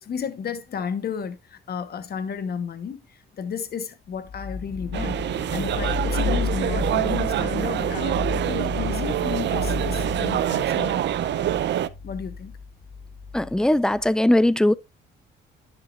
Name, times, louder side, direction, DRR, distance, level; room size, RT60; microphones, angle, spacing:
voice 1, 0.0-5.2 5.5-11.2 12.0-12.5, left 7 dB, 55° left, 1.2 m, -33 dB
sound 1, 4.2-14.1, left 4 dB, 75° left, 2.2 m, -32 dB
sound 2, 4.9-11.9, right 11 dB, 65° right, 0.5 m, -25 dB
voice 2, 13.3-14.8, left 1 dB, 5° left, 0.4 m, -19 dB
10.5 x 6.7 x 2.5 m
cardioid pair, 90°, 20 cm